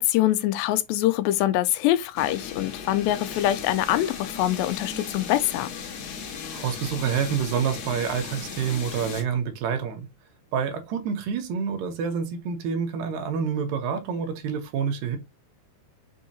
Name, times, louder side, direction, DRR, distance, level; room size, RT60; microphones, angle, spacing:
voice 1, 0.0-5.7, left 14 dB, 90° left, 2.3 m, -24 dB
sound 1, 2.2-9.2, left 6 dB, 65° left, 2.3 m, -37 dB
voice 2, 6.5-10.1 10.5-15.2, right 7 dB, 80° right, 2.5 m, -27 dB
6.2 x 2.7 x 2.7 m
omnidirectional pair, 4.0 m